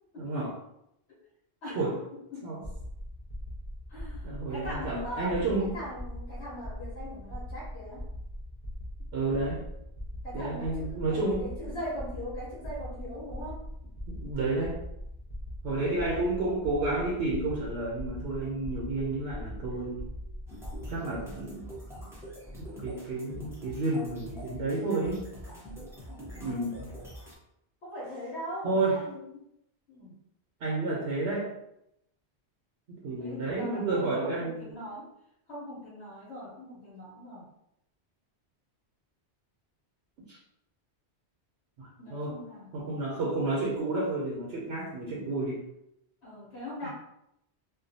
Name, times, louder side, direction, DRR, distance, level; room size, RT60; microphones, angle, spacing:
voice 1, 0.2-0.5 1.7-2.0 2.4-2.6 4.2-5.8 9.1-9.6 10.3-11.5 14.1-14.8 15.6-20.0 20.9-21.7 22.0-22.1 22.6-25.2 26.4-26.9 28.6-29.0 30.6-31.5 33.0-34.6 40.3-40.4 41.8-42.3 42.7-45.6, right 2 dB, 75° right, -4 dB, 0.9 m, -31 dB
sound 1, 2.6-20.9, equal, 45° left, 0.6 m, -41 dB
voice 2, 3.9-8.0 10.2-13.7 19.7-19.8 25.4-25.7 26.1-26.8 27.8-29.4 29.9-30.1 33.2-35.1 35.5-37.5 42.0-42.8 46.2-46.9, equal, 80° left, -6 dB, 1.2 m, -41 dB
sound 2, 20.5-27.3, equal, 5° right, 0.5 m, -44 dB
2.5 x 2.2 x 2.6 m, 0.81 s
omnidirectional pair, 1.1 m